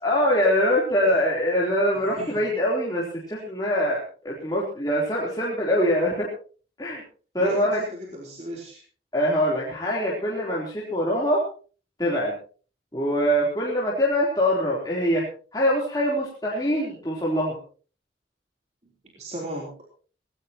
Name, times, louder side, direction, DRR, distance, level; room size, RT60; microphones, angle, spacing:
voice 1, 0.0-6.3 6.8-7.0 7.3-7.8 9.1-11.4 12.0-12.3 12.9-15.3 15.5-17.6, equal, 20° left, -5 dB, 3.7 m, -23 dB
voice 2, 7.4-8.8 19.2-19.7, equal, 40° right, -2 dB, 3.7 m, -36 dB
19.5 x 18.0 x 3.0 m, 0.39 s
head